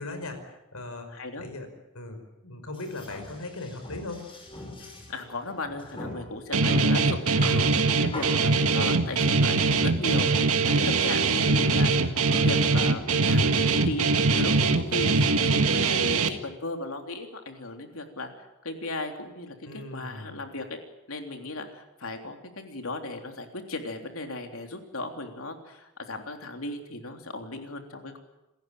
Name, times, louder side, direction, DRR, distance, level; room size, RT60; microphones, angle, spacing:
voice 1, 0.0-1.1 1.4-1.7 1.9-4.3 19.7-20.4, left 2 dB, 90° left, 7 dB, 5.4 m, -38 dB
voice 2, 1.1-1.4 5.1-14.0 14.3-20.6 21.1-28.2, left 2 dB, 75° left, 4 dB, 3.4 m, -36 dB
sound 1, 2.7-16.1, left 1 dB, 25° left, 6.2 m, -44 dB
Guitar, 6.5-16.3, right 3 dB, 85° right, 1.7 m, -22 dB
28.0 x 14.5 x 9.1 m, 0.97 s
head